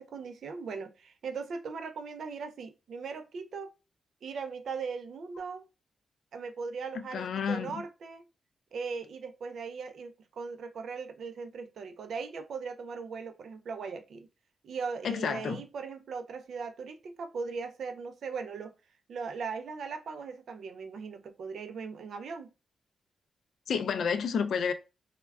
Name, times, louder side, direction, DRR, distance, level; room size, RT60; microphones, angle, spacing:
voice 1, 0.0-3.7 4.2-5.6 6.3-8.2 8.7-14.3 14.6-18.7 19.1-22.5, right 5 dB, 70° right, 0.3 m, -39 dB
voice 2, 6.9-7.8 15.0-15.6 23.7-24.7, left 6 dB, 75° left, 0.3 m, -30 dB
3.4 x 2.1 x 2.2 m
wide cardioid pair, 140°, 0 cm